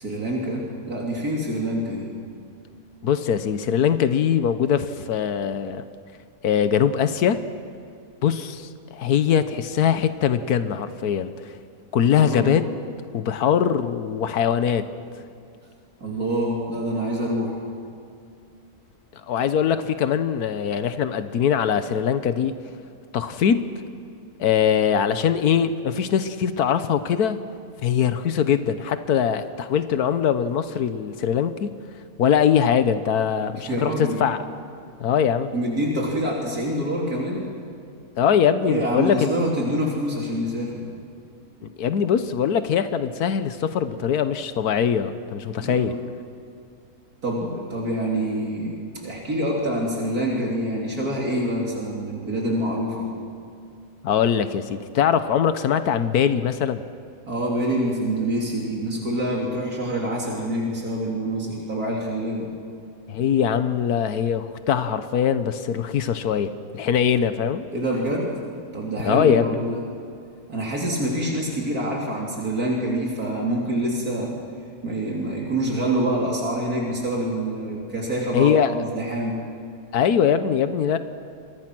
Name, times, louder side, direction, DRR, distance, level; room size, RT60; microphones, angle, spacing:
voice 1, 0.0-2.1 12.2-12.6 16.0-17.6 33.5-34.2 35.5-37.5 38.7-40.8 45.6-46.0 47.2-53.1 57.3-62.5 67.7-68.3 68.7-69.8 70.5-74.3 74.8-79.4, right 1 dB, 75° right, -2 dB, 3.8 m, -26 dB
voice 2, 3.0-5.8 6.4-7.4 8.2-11.3 11.9-12.7 13.1-14.8 19.3-22.5 23.1-23.6 24.4-27.4 27.8-31.7 32.2-34.4 35.0-35.5 38.2-39.3 41.8-45.9 54.0-56.8 63.1-67.6 69.0-69.5 78.3-78.7 79.9-81.0, left 8 dB, 90° left, 11 dB, 1.5 m, -22 dB
29.5 x 24.0 x 6.2 m, 2.4 s
omnidirectional pair, 1.6 m